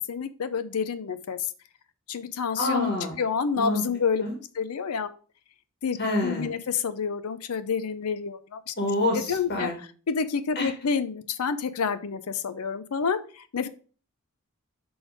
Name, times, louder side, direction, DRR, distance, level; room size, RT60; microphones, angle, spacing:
voice 1, 0.0-1.4 2.1-2.9 3.2-4.2 4.6-5.1 5.8-8.7 9.1-9.7 10.1-13.7, left 6 dB, 90° left, 12 dB, 0.5 m, -28 dB
voice 2, 2.6-3.2 3.6-3.8 4.2-4.3 6.0-6.5 8.8-9.8 10.5-10.7, left 1 dB, 50° left, 1 dB, 1.6 m, -27 dB
6.2 x 3.4 x 5.0 m, 0.39 s
head